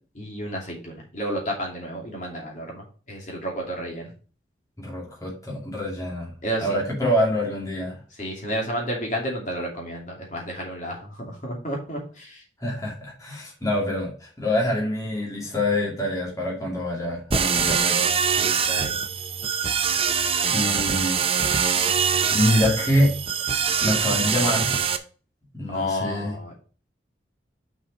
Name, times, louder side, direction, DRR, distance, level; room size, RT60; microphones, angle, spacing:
voice 1, 0.1-4.1 6.4-6.8 8.2-12.4 18.4-19.0 25.7-26.5, equal, 40° left, -1 dB, 2.6 m, -31 dB
voice 2, 4.8-6.3 6.6-8.0 12.6-18.0 20.5-21.2 22.3-23.2 23.8-24.8 25.5-26.3, left 1 dB, 15° left, -3 dB, 2.5 m, -25 dB
sound 1, 17.3-25.0, right 6 dB, 30° right, 0.6 m, -23 dB
6.1 x 5.6 x 5.2 m, 0.39 s
head